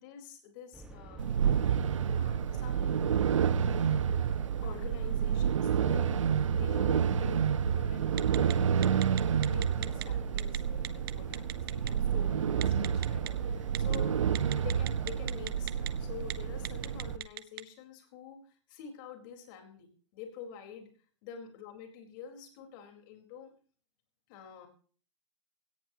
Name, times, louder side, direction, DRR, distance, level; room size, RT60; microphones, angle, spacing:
voice 1, 0.0-1.7 2.1-3.0 3.4-9.2 9.4-14.2 14.5-20.9 21.2-23.5 24.3-24.7, left 8 dB, 40° left, 4 dB, 4.3 m, -48 dB
sound 1, 0.7-17.2, right 2 dB, 5° right, 1.7 m, -48 dB
sound 2, 1.2-17.2, right 8 dB, 85° right, 0.9 m, -29 dB
Telephone, 8.2-8.5 8.8-10.0 10.4-10.6 10.8-11.9 12.6-13.3 13.7-14.0 14.3-15.9 16.2-16.3 16.6-17.6, right 16 dB, 50° right, 1.0 m, -37 dB
17.5 x 16.5 x 2.9 m, 0.43 s
hypercardioid pair, 140°, 16 cm